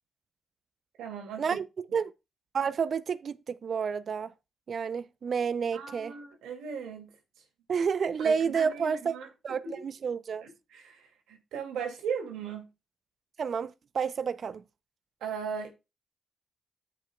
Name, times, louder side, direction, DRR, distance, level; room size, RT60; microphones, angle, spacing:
voice 1, 1.0-1.6 1.9-2.0 5.7-7.1 8.2-9.3 9.6-9.8 10.4-12.7 15.2-15.7, right 6 dB, 85° right, 2.4 m, -37 dB
voice 2, 2.5-4.3 4.7-6.1 7.7-9.2 9.4-10.5 13.4-14.6, right 6 dB, 60° right, 0.6 m, -30 dB
13.5 x 5.4 x 2.3 m
supercardioid pair, 55°, 0 cm